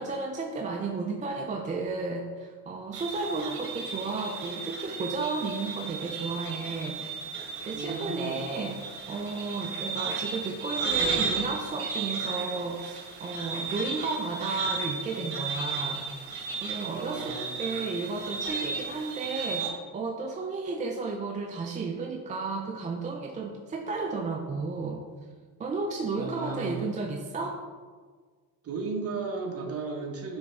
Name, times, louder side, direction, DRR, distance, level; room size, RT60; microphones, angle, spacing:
voice 1, 0.0-7.0 7.4-8.8 9.1-16.0 16.3-25.0 25.6-27.6, right 3 dB, 20° right, 1 dB, 0.4 m, -33 dB
sound 1, 2.9-19.7, right 4 dB, 70° right, 1.4 m, -34 dB
voice 2, 7.7-8.5 16.9-17.8 26.2-26.9 28.6-30.4, right 4 dB, 40° right, 0 dB, 1.1 m, -35 dB
8.7 x 3.5 x 3.3 m, 1.5 s
cardioid pair, 130°, 37 cm